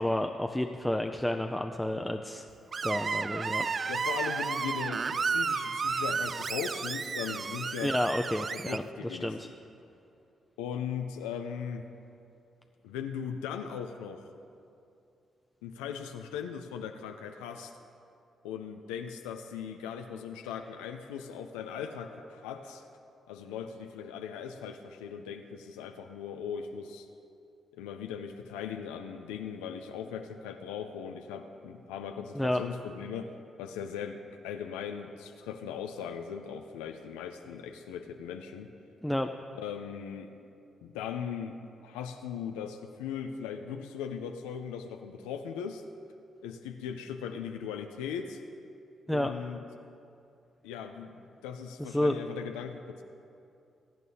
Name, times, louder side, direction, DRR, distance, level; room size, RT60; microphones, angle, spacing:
voice 1, 0.0-2.5 2.8-3.7 7.8-9.5 32.3-32.6 39.0-39.3 49.1-49.3 51.8-52.1, left 1 dB, 5° left, 4 dB, 0.6 m, -30 dB
Screech, 2.7-8.8, right 5 dB, 50° right, 0.3 m, -32 dB
voice 2, 3.9-7.9 8.5-9.5 10.6-11.9 12.8-14.2 15.6-17.7 18.4-22.8 23.3-27.1 27.8-33.3 33.6-38.7 39.5-40.3 40.8-45.8 46.4-48.4 49.1-49.6 50.6-51.2 51.4-53.0, left 7 dB, 90° left, 5 dB, 0.5 m, -39 dB
21.5 x 9.1 x 2.8 m, 2.6 s
hypercardioid pair, 45°, 0 cm